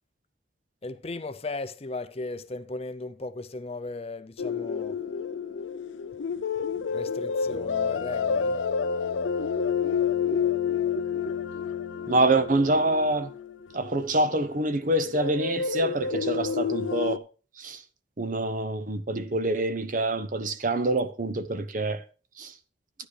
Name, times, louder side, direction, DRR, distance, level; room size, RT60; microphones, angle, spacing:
voice 1, 0.8-5.0 6.9-8.6, left 3 dB, 30° left, 0.6 m, -36 dB
sound 1, 4.4-14.0 15.0-17.2, left 6 dB, 85° left, 0.5 m, -29 dB
Brass instrument, 7.4-13.3, left 2 dB, 55° left, 1.1 m, -46 dB
voice 2, 12.1-13.3 13.7-17.2 17.6-17.8 18.2-22.0 22.4-22.5, right 2 dB, 45° right, 0.8 m, -26 dB
12.0 x 9.9 x 3.3 m
head